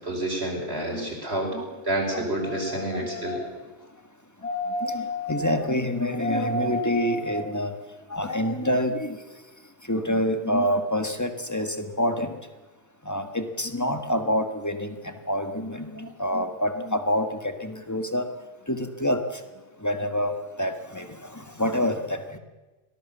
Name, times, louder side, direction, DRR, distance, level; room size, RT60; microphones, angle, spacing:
voice 1, 0.0-1.6 1.8-3.4, right 1 dB, 55° right, 1 dB, 5.6 m, -29 dB
sound 1, 2.4-3.5 4.4-5.6 6.2-7.5 8.0-8.1, left 1 dB, 65° left, 4.6 m, -31 dB
voice 2, 2.7-3.1 4.8-7.7 8.1-9.2 9.9-12.3 13.0-18.3 18.7-19.2 19.8-20.3 20.6-21.1 21.3-22.2, equal, 15° left, 7 dB, 1.5 m, -27 dB
24.5 x 18.5 x 7.4 m, 1.2 s
omnidirectional pair, 1.3 m